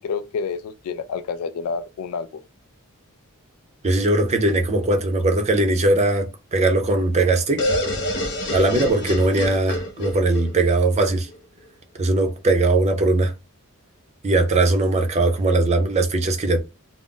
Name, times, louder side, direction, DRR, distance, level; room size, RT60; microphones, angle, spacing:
voice 1, 0.0-2.4, left 5 dB, 70° left, 0.3 m, -29 dB
voice 2, 3.8-7.7 8.5-11.3 12.0-13.3 14.2-16.6, right 2 dB, 30° right, 0.5 m, -20 dB
sound 1, 7.6-11.4, left 1 dB, 55° left, 0.9 m, -27 dB
2.5 x 2.0 x 3.7 m
head